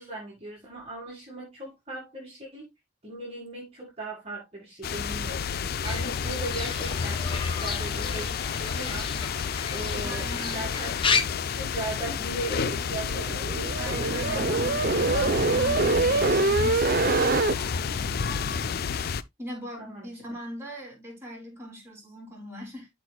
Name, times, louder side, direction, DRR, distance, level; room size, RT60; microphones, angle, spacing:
voice 1, 0.0-2.7 3.0-9.1 9.7-13.4 13.9-14.7 15.0-15.6 19.8-20.2, right 2 dB, 30° right, 2.0 m, -38 dB
sound 1, 4.8-19.2, left 6 dB, 50° left, 0.4 m, -30 dB
Fowl / Bird, 5.8-11.2, left 5 dB, 25° left, 0.9 m, -32 dB
voice 2, 10.0-10.7 13.8-15.9 16.2-18.7 19.4-22.9, equal, 15° right, 3.4 m, -41 dB
sound 2, 12.9-17.6, right 3 dB, 45° right, 0.7 m, -25 dB
12.0 x 4.6 x 2.2 m
head